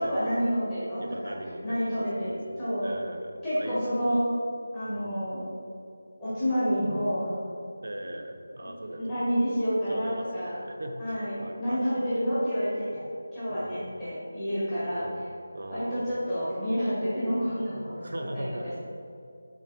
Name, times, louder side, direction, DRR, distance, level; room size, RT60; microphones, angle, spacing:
voice 1, 0.0-1.3 1.6-2.9 3.4-4.2 4.7-5.4 6.2-7.3 8.6-10.5 11.0-13.0 13.3-15.0 15.7-18.0 18.3-18.5, equal, 10° left, -15 dB, 1.2 m, -29 dB
voice 2, 1.0-4.2 4.9-5.2 6.7-6.9 7.6-9.0 9.9-12.1 13.5-13.9 15.0-15.2 15.5-16.1 18.0-18.7, right 1 dB, 60° right, 4 dB, 0.4 m, -39 dB
3.5 x 3.1 x 3.5 m, 2.4 s
figure-of-eight pair, 165°, 0 cm